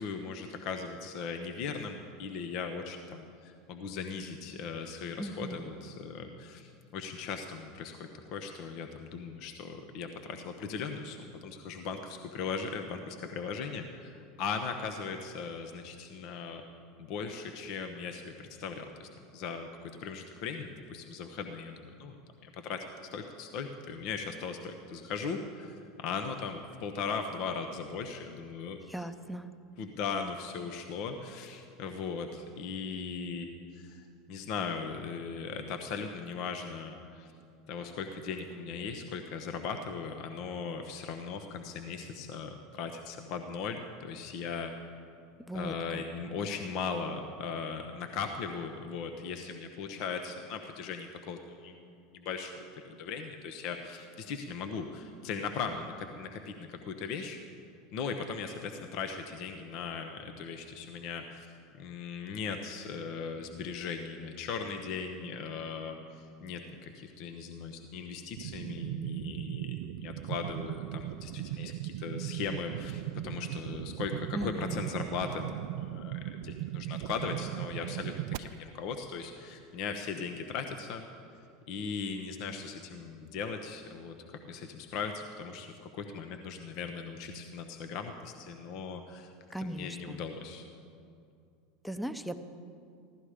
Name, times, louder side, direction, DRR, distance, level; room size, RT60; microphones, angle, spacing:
voice 1, 0.0-16.6 17.0-19.7 20.0-22.2 22.4-28.8 29.8-37.3 37.7-44.7 45.5-57.4 57.9-61.5 61.8-81.0 81.7-89.3 89.6-90.7, left 5 dB, 55° left, 5 dB, 0.9 m, -38 dB
voice 2, 5.2-5.7 28.9-29.5 45.5-46.0 74.3-74.9 89.5-90.2 91.8-92.4, right 1 dB, 5° left, 10 dB, 0.8 m, -38 dB
sound 1, 68.4-78.4, right 14 dB, 65° right, 0.4 m, -38 dB
15.0 x 13.0 x 5.0 m, 2.5 s
hypercardioid pair, 85°, 0 cm